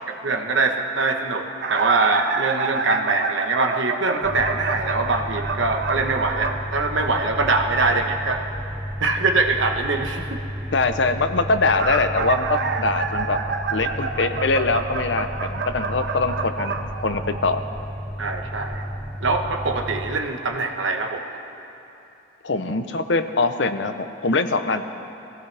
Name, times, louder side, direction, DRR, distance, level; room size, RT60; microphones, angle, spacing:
voice 1, 0.1-1.4 1.7-8.4 9.0-10.4 18.2-18.8 19.2-21.2, right 3 dB, 75° right, 4 dB, 1.2 m, -23 dB
sound 1, 1.6-6.6 11.5-17.6 18.7-18.9 19.9-20.0 20.4-20.5, right 4 dB, 60° right, 0.8 m, -28 dB
sound 2, 4.2-20.1, equal, 5° right, 2.9 m, -33 dB
voice 2, 10.7-13.4 13.7-16.8 17.0-17.6 22.4-24.9, left 3 dB, 65° left, 9 dB, 0.8 m, -23 dB
23.5 x 16.5 x 3.5 m, 2.9 s
head